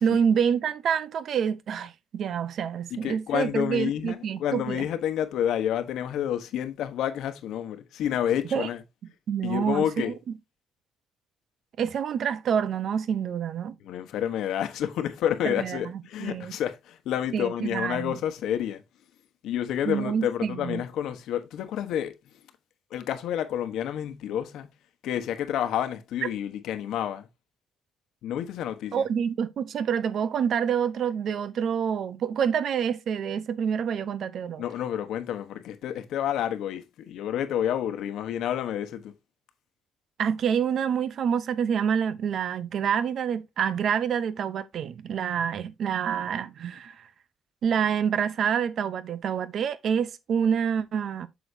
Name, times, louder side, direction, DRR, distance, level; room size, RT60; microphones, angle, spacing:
voice 1, 0.0-4.9 8.5-8.7 9.3-10.1 11.8-13.7 15.5-16.5 17.3-18.1 19.8-20.8 28.9-34.6 40.2-47.0 47.6-51.3, right 7 dB, 50° right, 0.6 m, -27 dB
voice 2, 2.9-8.8 9.4-10.1 13.8-18.8 19.4-22.1 22.9-24.7 25.0-27.3 28.2-29.0 34.6-39.1, left 10 dB, 80° left, 1.1 m, -29 dB
8.0 x 6.3 x 2.7 m
cardioid pair, 165°, 0 cm